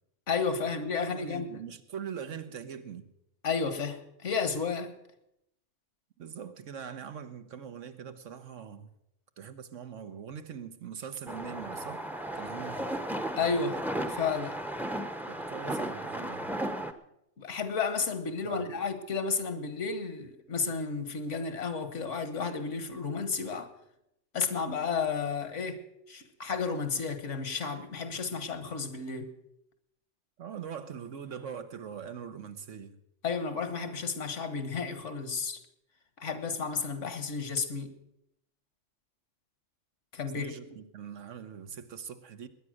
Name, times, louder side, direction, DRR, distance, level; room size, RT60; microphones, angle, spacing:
voice 1, 0.3-1.5 3.4-4.9 13.4-14.6 17.4-23.7 24.3-29.3 33.2-35.6 36.2-38.0 40.1-40.7, left 5 dB, 75° left, 1.6 m, -32 dB
voice 2, 1.1-3.1 6.2-8.9 9.4-12.1 12.3-12.9 15.3-16.5 18.4-18.7 30.4-33.0 40.3-42.5, right 7 dB, 90° right, 1.4 m, -42 dB
sound 1, 11.3-16.9, right 1 dB, ahead, 0.6 m, -35 dB
20.0 x 9.8 x 6.3 m
omnidirectional pair, 1.3 m